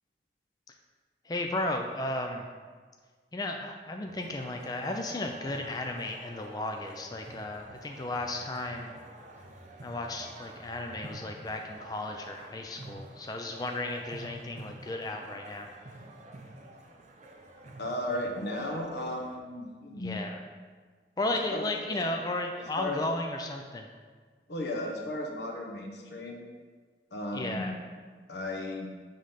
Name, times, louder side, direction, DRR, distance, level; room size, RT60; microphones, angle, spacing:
voice 1, 1.2-2.4 3.3-8.9 9.8-15.7 20.0-20.4 21.2-23.9 27.3-27.7, left 2 dB, 20° left, 3 dB, 0.3 m, -34 dB
sound 1, 4.1-19.4, right 1 dB, 40° right, 0.5 m, -48 dB
voice 2, 17.8-20.2 21.5-21.7 22.8-23.0 24.5-26.4 27.1-27.7 28.3-28.9, left 1 dB, 75° left, 1 dB, 1.0 m, -35 dB
5.2 x 3.8 x 5.6 m, 1.5 s
head